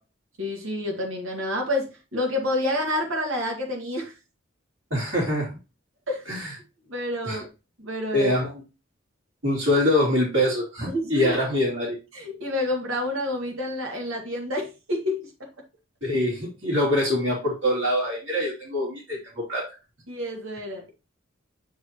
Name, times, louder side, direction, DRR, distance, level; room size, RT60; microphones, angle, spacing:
voice 1, 0.4-4.1 6.1-6.4 6.9-7.5 7.8-8.3 10.9-11.4 12.1-15.3 20.1-20.9, left 1 dB, 90° right, 1.9 m, -28 dB
voice 2, 4.9-5.5 6.3-6.5 7.2-7.4 8.1-8.5 9.4-11.9 16.0-19.6, left 1 dB, 65° right, 2.7 m, -24 dB
7.0 x 4.7 x 2.9 m
head